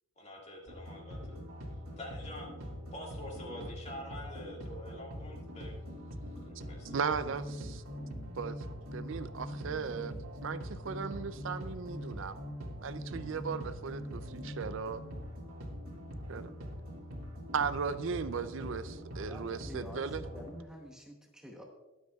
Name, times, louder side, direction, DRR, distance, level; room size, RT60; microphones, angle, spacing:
voice 1, 0.2-1.4 2.0-5.8 6.4-6.9, left 1 dB, 30° left, 2.0 m, -46 dB
sound 1, 0.7-20.6, equal, 75° right, 2.0 m, -43 dB
voice 2, 6.9-7.8 8.4-8.7 8.9-10.1 10.4-12.4 12.8-15.1 16.3-16.5 17.5-20.2, right 6 dB, 60° right, 0.4 m, -36 dB
voice 3, 19.2-21.6, equal, 5° right, 0.9 m, -48 dB
21.5 x 7.9 x 2.3 m
head